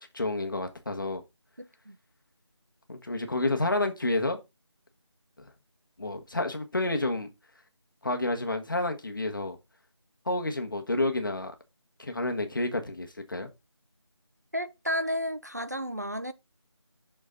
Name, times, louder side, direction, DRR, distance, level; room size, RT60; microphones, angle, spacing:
voice 1, 0.1-1.2 2.9-4.4 5.4-5.5 6.0-7.3 8.0-9.6 10.2-11.5 12.0-13.5, left 2 dB, 45° left, 1.5 m, -29 dB
voice 2, 1.6-2.0 14.5-16.3, equal, 35° right, 0.4 m, -32 dB
6.4 x 6.3 x 3.7 m
figure-of-eight pair, 170°, 15 cm